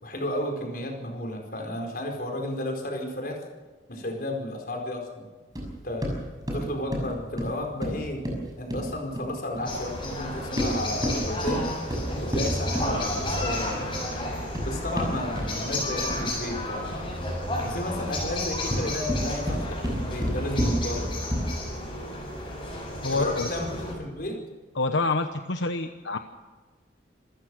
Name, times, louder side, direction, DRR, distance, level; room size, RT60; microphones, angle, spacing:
voice 1, 0.0-3.4 3.9-5.3 5.8-6.1 6.5-8.2 8.6-11.8 12.2-13.8 14.6-17.0 17.6-21.2 23.1-24.4, left 1 dB, 50° left, 3 dB, 4.9 m, -32 dB
sound 1, 5.5-9.7 10.4-13.5 14.2-16.4 18.5-21.7, equal, 20° right, 6.2 m, -30 dB
sound 2, 9.6-23.9, left 1 dB, 25° left, 7.5 m, -32 dB
voice 2, 23.0-23.5 24.8-26.2, left 3 dB, 80° left, 7 dB, 1.1 m, -27 dB
27.5 x 15.5 x 6.4 m, 1.4 s
head